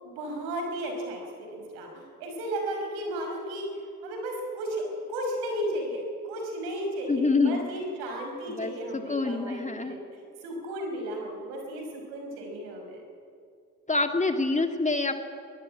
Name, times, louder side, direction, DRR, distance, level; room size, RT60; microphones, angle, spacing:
voice 1, 0.2-13.0, right 1 dB, 75° right, 3 dB, 5.2 m, -34 dB
voice 2, 7.1-7.7 8.5-10.0 13.9-15.1, left 3 dB, 20° left, 6 dB, 2.1 m, -26 dB
22.5 x 14.5 x 8.7 m, 2.4 s
hypercardioid pair, 50°, 39 cm